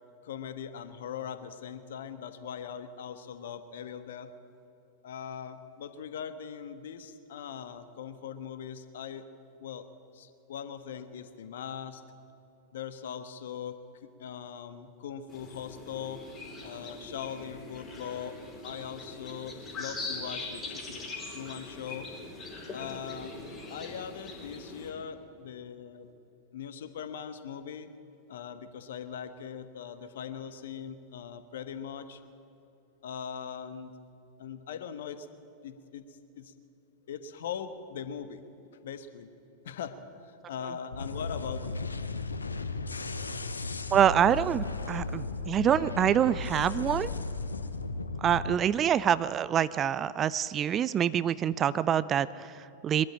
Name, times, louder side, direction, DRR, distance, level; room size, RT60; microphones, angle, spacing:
voice 1, 0.2-4.3 5.0-9.3 9.6-9.9 10.1-12.0 12.7-16.2 16.6-18.4 18.6-22.1 22.7-23.3 23.7-26.1 26.5-27.9 28.3-32.2 33.0-33.9 34.4-35.3 35.6-36.5 37.1-38.4 38.8-39.3 39.6-41.8, left 8 dB, 60° left, 11 dB, 1.3 m, -40 dB
sound 1, 15.3-24.9, left 3 dB, 20° left, 5.0 m, -42 dB
sound 2, 40.9-48.5, left 3 dB, 75° left, 1.0 m, -35 dB
voice 2, 43.9-47.1 48.2-53.1, right 9 dB, 25° right, 17 dB, 0.5 m, -26 dB
23.0 x 13.0 x 8.8 m, 2.9 s
figure-of-eight pair, 90°, 0 cm